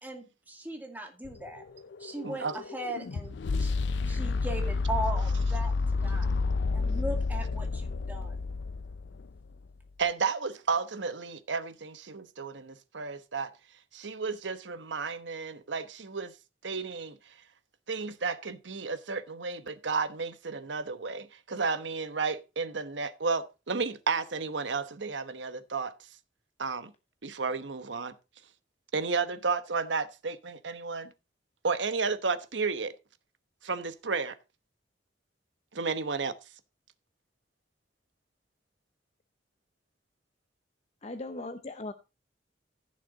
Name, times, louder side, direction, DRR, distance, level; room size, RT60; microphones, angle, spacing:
voice 1, 0.0-1.6 2.0-3.7 4.1-6.3 6.7-8.4, right 1 dB, 10° right, 2.1 m, -38 dB
sound 1, 1.3-9.4, left 4 dB, 75° left, 0.5 m, -30 dB
voice 2, 2.2-2.6 10.0-13.5 13.9-16.3 16.6-17.2 17.9-25.9 26.6-26.9 27.2-28.1 28.9-31.1 31.6-32.9 33.6-34.4 35.7-36.4, right 4 dB, 90° right, 1.1 m, -32 dB
voice 3, 41.0-41.9, left 2 dB, 35° left, 0.7 m, -38 dB
15.0 x 6.6 x 3.9 m
head